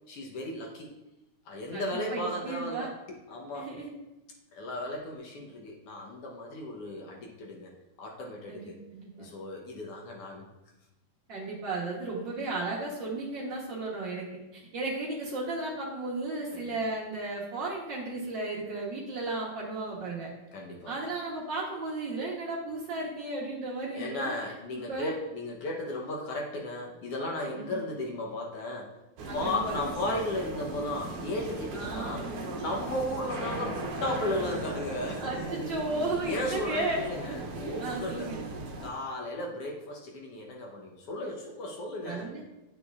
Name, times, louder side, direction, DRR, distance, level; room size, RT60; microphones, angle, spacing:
voice 1, 0.1-0.9 1.5-2.9 3.3-3.7 4.5-7.7 8.0-8.8 9.2-10.5 16.5-16.7 20.5-21.0 23.9-28.9 29.3-35.5 36.2-38.3 38.8-42.3, left 1 dB, 70° left, -1 dB, 1.4 m, -35 dB
voice 2, 1.7-2.9 3.5-3.9 8.5-9.3 11.3-14.3 14.5-20.3 20.9-24.3 24.9-25.2 27.4-27.8 29.3-29.8 31.7-32.4 35.2-37.0 37.8-38.4 42.0-42.4, right 2 dB, 90° right, -5 dB, 1.0 m, -34 dB
sound 1, 29.2-38.9, right 2 dB, 65° right, 1.7 m, -38 dB
9.4 x 6.7 x 2.4 m, 0.98 s
omnidirectional pair, 3.7 m